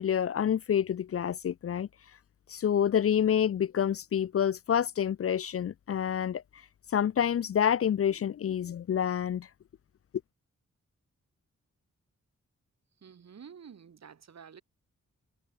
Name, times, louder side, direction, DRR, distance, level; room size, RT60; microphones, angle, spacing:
voice 1, 0.0-1.9 2.5-6.4 6.9-9.5, left 9 dB, 50° left, 0.4 m, -28 dB
voice 2, 13.0-14.6, right 7 dB, 60° right, 2.9 m, -50 dB
wide cardioid pair, 165°, 30 cm